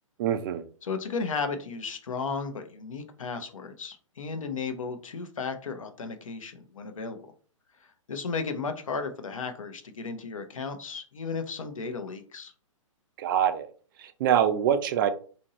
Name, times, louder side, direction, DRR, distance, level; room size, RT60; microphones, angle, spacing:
voice 1, 0.2-0.6 13.2-13.7 14.0-15.1, right 9 dB, 40° right, 10 dB, 0.4 m, -24 dB
voice 2, 0.8-7.2 8.1-12.5, left 4 dB, 75° left, 7 dB, 0.6 m, -34 dB
2.7 x 2.6 x 2.9 m, 0.41 s
figure-of-eight pair, 120°, 17 cm